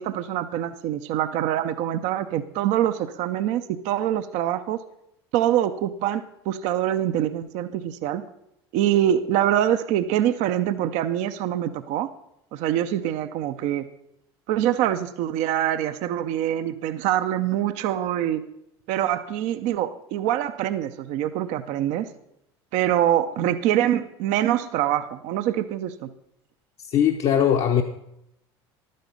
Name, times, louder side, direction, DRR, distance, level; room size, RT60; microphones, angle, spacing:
voice 1, 0.0-4.8 5.3-8.2 8.7-12.1 12.5-13.8 14.5-18.4 18.9-22.1 22.7-26.1, right 11 dB, 60° right, 11 dB, 0.7 m, -24 dB
voice 2, 26.8-27.8, left 9 dB, 50° left, 3 dB, 0.9 m, -20 dB
11.5 x 9.5 x 5.3 m, 0.80 s
hypercardioid pair, 75°, 13 cm